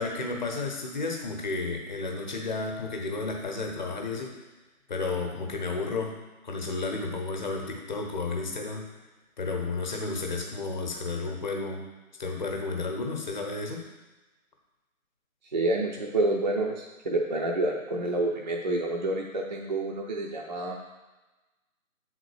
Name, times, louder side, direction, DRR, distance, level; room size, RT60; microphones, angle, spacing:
voice 1, 0.0-4.3 4.9-6.2 6.4-8.9 9.4-11.8 12.2-13.8, left 3 dB, 35° left, 2 dB, 0.9 m, -32 dB
voice 2, 15.5-20.8, right 2 dB, 35° right, -1 dB, 0.5 m, -28 dB
7.7 x 3.9 x 4.8 m, 1.1 s
figure-of-eight pair, 150°, 42 cm